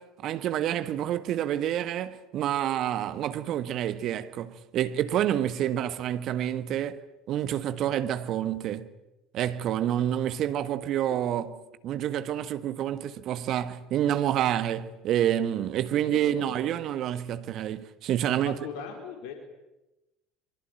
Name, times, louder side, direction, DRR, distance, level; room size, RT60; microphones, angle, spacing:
voice 1, 0.0-8.9 9.3-11.6 11.8-18.6, right 11 dB, 50° right, 1.5 m, -28 dB
voice 2, 16.0-16.7 18.4-19.3, left 6 dB, 60° left, 4.2 m, -40 dB
24.0 x 23.5 x 9.1 m
figure-of-eight pair, 65°, 0 cm